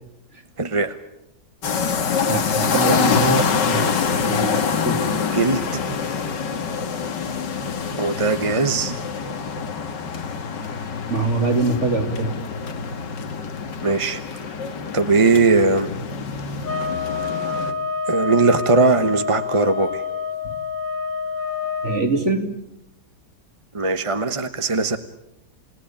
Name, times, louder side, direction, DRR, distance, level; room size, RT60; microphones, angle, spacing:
voice 1, 0.6-0.9 5.3-5.8 8.0-9.0 13.8-14.2 14.9-15.9 18.1-20.0 23.7-25.0, right 3 dB, 25° right, 9 dB, 0.9 m, -19 dB
sound 1, 1.6-17.7, left 6 dB, 80° left, 2.2 m, -25 dB
voice 2, 2.3-3.8 4.2-5.1 11.1-12.3 20.4-20.5 21.8-22.5, right 3 dB, 40° right, 6 dB, 2.8 m, -23 dB
sound 2, 16.6-22.1, left 5 dB, 55° left, 1.8 m, -27 dB
29.5 x 17.5 x 8.8 m, 0.86 s
omnidirectional pair, 1.9 m